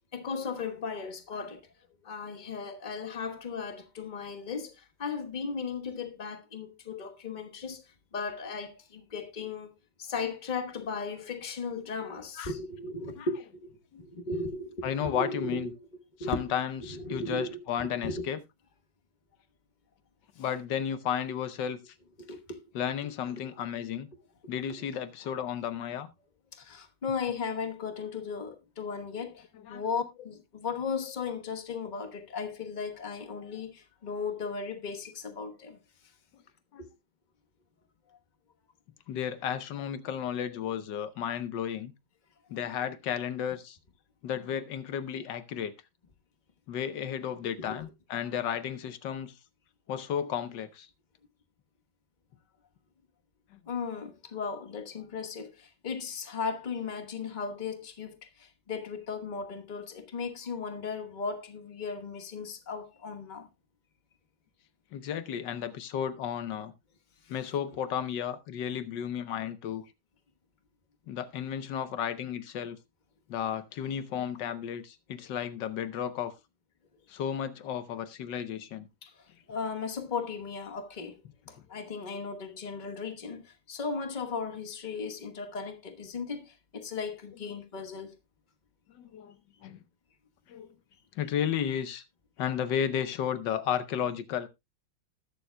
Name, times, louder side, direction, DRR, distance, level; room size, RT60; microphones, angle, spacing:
voice 1, 0.1-1.7 2.0-13.7 14.0-15.7 16.2-16.4 16.9-18.2 22.2-22.6 23.3-23.4 26.5-35.8 36.8-36.9 47.6-47.8 53.7-63.5 67.2-67.3 79.0-81.2 81.5-88.1, left 4 dB, 30° left, 1.0 m, -36 dB
voice 2, 14.8-15.7 16.3-18.4 20.4-21.9 22.7-24.1 24.5-26.1 29.7-29.8 36.7-36.8 39.1-41.9 42.5-43.8 44.2-45.7 46.7-49.3 49.9-50.9 64.9-66.7 67.3-69.8 71.1-72.8 73.3-76.3 77.1-78.9 88.9-89.3 89.6-89.8 90.5-90.7 91.2-92.0 92.4-94.5, left 9 dB, 65° left, 1.4 m, -33 dB
20.0 x 7.0 x 2.2 m
omnidirectional pair, 2.2 m